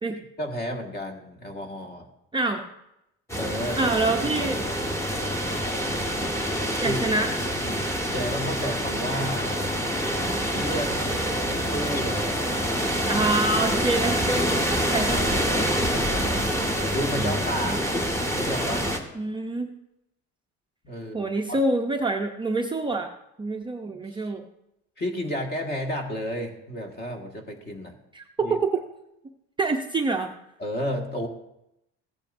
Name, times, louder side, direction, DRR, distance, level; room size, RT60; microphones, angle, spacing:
voice 1, 0.4-2.1 3.4-4.3 6.7-7.0 7.6-9.6 10.5-11.0 11.4-12.7 15.8-18.0 18.3-18.9 20.8-21.6 24.1-24.3 25.0-28.0 28.4-28.6 30.6-31.3, equal, 30° left, 3 dB, 1.7 m, -32 dB
voice 2, 2.3-2.7 3.8-4.6 6.8-7.4 13.1-15.5 17.2-17.8 19.2-19.7 21.1-23.1 23.4-24.4 28.1-28.8 29.6-30.3, right 2 dB, 15° right, 3 dB, 0.6 m, -26 dB
sound 1, 3.3-19.0, equal, 10° left, 1.3 m, -26 dB
15.5 x 8.8 x 2.6 m, 0.84 s
cardioid pair, 120°, 32 cm